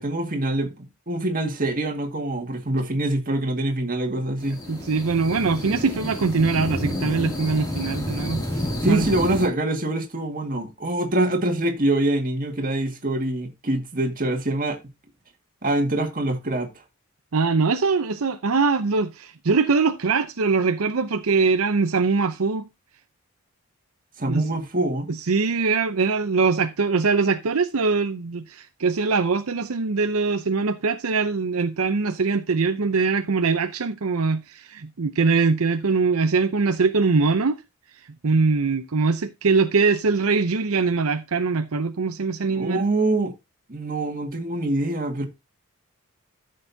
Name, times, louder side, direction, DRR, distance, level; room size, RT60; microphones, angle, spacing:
voice 1, 0.0-4.6 8.8-14.8 15.6-16.7 24.2-25.1 42.5-43.3 43.7-45.3, right 1 dB, 40° right, 1.9 m, -25 dB
sound 1, 4.4-9.5, left 1 dB, 15° left, 2.6 m, -30 dB
voice 2, 4.7-9.1 17.3-22.7 24.3-24.5 25.1-37.6 38.0-42.8, right 4 dB, 75° right, 0.7 m, -22 dB
13.5 x 6.6 x 2.7 m
head